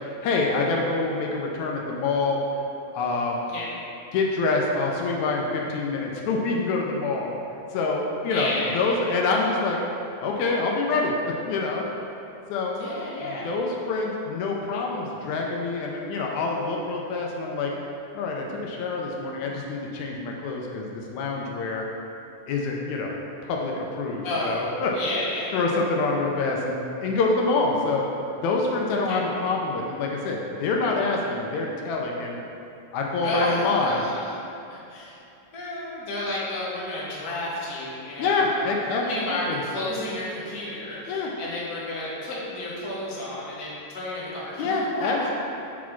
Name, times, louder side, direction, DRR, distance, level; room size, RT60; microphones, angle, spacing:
voice 1, 0.0-2.4 2.9-3.5 4.1-7.4 7.7-9.8 10.2-11.9 12.5-12.8 13.3-17.7 18.1-21.9 22.5-23.1 23.4-24.9 25.5-28.0 28.4-32.4 32.9-34.0 38.2-39.6 41.1-41.3 44.6-45.3, left 3 dB, 75° left, -1 dB, 1.9 m, -26 dB
voice 2, 8.2-9.2 12.7-13.4 24.2-25.6 29.1-29.2 33.2-34.3 34.7-35.2 35.5-45.3, left 1 dB, 50° left, -7 dB, 1.1 m, -31 dB
7.2 x 4.1 x 4.5 m, 2.8 s
omnidirectional pair, 3.6 m